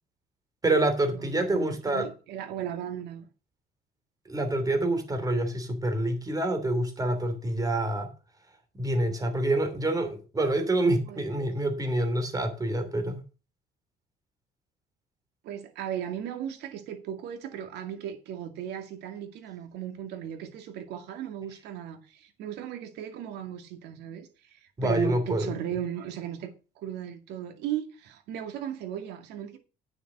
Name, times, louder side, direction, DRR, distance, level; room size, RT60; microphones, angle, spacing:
voice 1, 0.6-2.1 4.3-8.1 8.7-13.2 24.8-25.5, right 1 dB, 20° right, 3.0 m, -27 dB
voice 2, 1.1-3.3 11.1-11.3 15.4-26.5 26.8-29.6, right 10 dB, 85° right, 2.2 m, -36 dB
9.3 x 6.9 x 6.2 m
cardioid pair, 110°, 17 cm